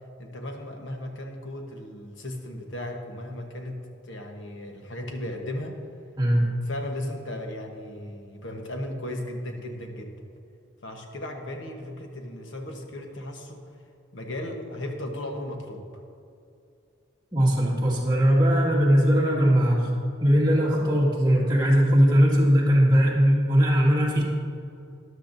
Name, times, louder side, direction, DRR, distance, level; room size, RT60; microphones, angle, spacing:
voice 1, 0.2-3.8 4.0-5.8 6.7-10.1 10.8-13.6 14.1-15.8, left 1 dB, 65° left, 3 dB, 1.1 m, -36 dB
voice 2, 6.2-6.5 17.3-19.9 20.2-24.2, equal, 20° right, -4 dB, 1.8 m, -20 dB
13.0 x 11.5 x 2.6 m, 2.5 s
head